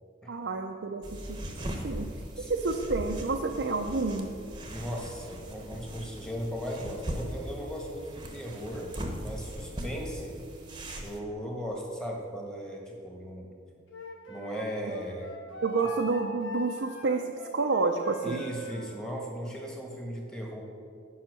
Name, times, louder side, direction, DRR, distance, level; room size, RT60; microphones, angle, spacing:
voice 1, 0.3-1.4 1.8-4.3 15.6-18.4, right 3 dB, 65° right, 2 dB, 0.6 m, -29 dB
sound 1, 1.0-11.2, right 1 dB, 25° right, 1.0 m, -39 dB
voice 2, 4.7-8.9 9.2-10.4 11.0-13.5 14.3-15.4 18.2-20.6, equal, 5° left, -1 dB, 1.4 m, -37 dB
Wind instrument woodwind instrument, 13.9-19.0, right 1 dB, 80° left, 1.3 m, -41 dB
10.5 x 5.6 x 6.3 m, 2.3 s
head